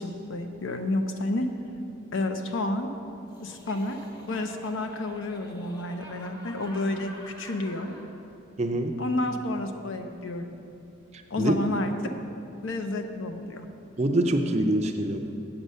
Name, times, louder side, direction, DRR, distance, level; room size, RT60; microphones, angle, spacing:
voice 1, 0.0-1.5 2.1-2.9 3.4-4.0 4.3-7.1 7.4-8.0 9.0-10.4 11.3-11.9 12.6-13.7, left 2 dB, 65° left, 6 dB, 0.6 m, -30 dB
Laughter, 3.3-8.1, equal, 20° left, 1.0 m, -48 dB
voice 2, 8.6-8.9 11.1-11.5 14.0-15.2, right 1 dB, 30° right, 4 dB, 0.5 m, -25 dB
7.9 x 7.2 x 5.5 m, 2.7 s
head